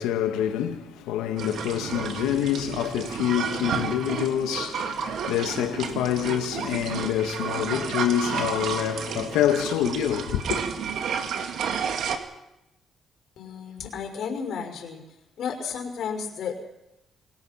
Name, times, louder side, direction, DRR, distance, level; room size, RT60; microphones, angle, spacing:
voice 1, 0.0-10.6, left 10 dB, 90° left, 1.9 m, -26 dB
sound 1, 1.4-12.2, right 7 dB, 70° right, 2.3 m, -31 dB
voice 2, 13.4-15.0 15.4-16.5, left 6 dB, 70° left, 5.6 m, -32 dB
27.5 x 19.0 x 5.9 m
supercardioid pair, 65°, 0 cm